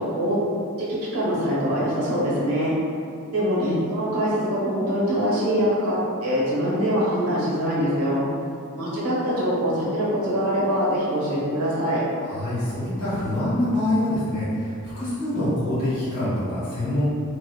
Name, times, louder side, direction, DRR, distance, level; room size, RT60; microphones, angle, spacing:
voice 1, 0.9-2.7 3.3-6.0 6.2-8.2 8.7-12.0, equal, 75° right, -7 dB, 0.8 m, -23 dB
voice 2, 12.2-17.0, left 1 dB, 75° left, -15 dB, 1.5 m, -25 dB
2.9 x 2.1 x 2.2 m, 2.3 s
head